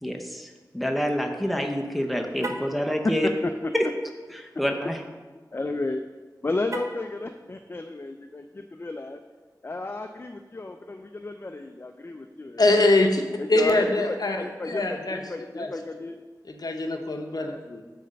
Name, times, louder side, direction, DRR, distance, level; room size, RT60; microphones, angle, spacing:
voice 1, 0.0-3.3 3.7-3.9 4.4-5.0, equal, ahead, 3 dB, 0.7 m, -27 dB
Car, 2.3-2.8 6.6-7.1, right 2 dB, 45° right, 0.7 m, -35 dB
voice 2, 3.2-3.7 5.5-6.1 6.4-9.2 9.6-12.8 13.4-16.2 17.4-17.6, left 2 dB, 35° left, 6 dB, 0.3 m, -33 dB
voice 3, 12.6-13.2 13.5-15.2 15.6-15.7 16.5-17.8, left 2 dB, 65° left, 4 dB, 0.7 m, -23 dB
7.8 x 3.3 x 6.4 m, 1.4 s
wide cardioid pair, 75°, 7 cm